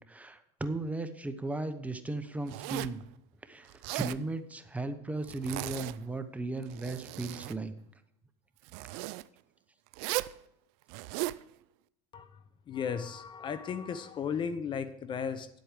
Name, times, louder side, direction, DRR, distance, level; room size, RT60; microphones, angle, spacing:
voice 1, 0.1-3.0 3.4-7.7, right 2 dB, 10° right, 9 dB, 0.8 m, -36 dB
Zipper (clothing), 2.5-3.0 3.7-4.2 5.2-6.1 6.6-7.6 8.7-9.2 9.9-10.4 10.9-11.4, right 19 dB, 70° right, 0.4 m, -37 dB
voice 2, 12.1-15.5, left 7 dB, 30° left, 13 dB, 0.6 m, -35 dB
10.0 x 8.0 x 4.9 m, 0.77 s
supercardioid pair, 115°, 15 cm